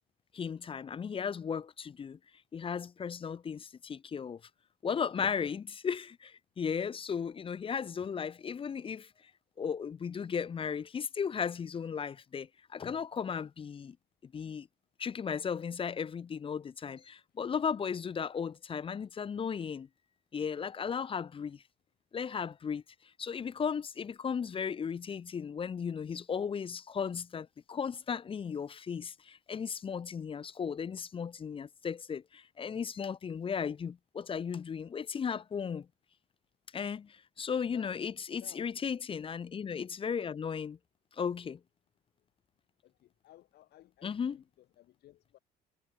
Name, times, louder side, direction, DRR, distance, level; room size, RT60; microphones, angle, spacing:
voice 1, 0.3-2.2 2.5-4.4 4.8-9.1 9.6-14.0 14.2-14.7 15.0-19.9 20.3-21.6 22.1-22.8 23.2-35.9 36.7-40.8 41.1-41.6 44.0-44.4, left 6 dB, 30° left, 0.8 m, -36 dB
voice 2, 37.7-38.0 38.4-38.7 42.8-45.4, left 14 dB, 70° left, 4.9 m, -57 dB
cardioid pair, 110°, 17 cm